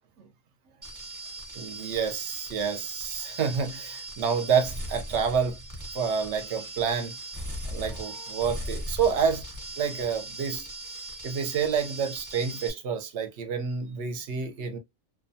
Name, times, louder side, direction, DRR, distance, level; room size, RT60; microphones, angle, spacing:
sound 1, 0.8-12.7, right 1 dB, 20° right, 0.6 m, -39 dB
voice 1, 1.5-5.6 5.9-7.2 7.7-9.4 9.8-10.7 11.2-14.8, right 6 dB, 65° right, 0.8 m, -28 dB
2.5 x 2.2 x 2.5 m
omnidirectional pair, 1.4 m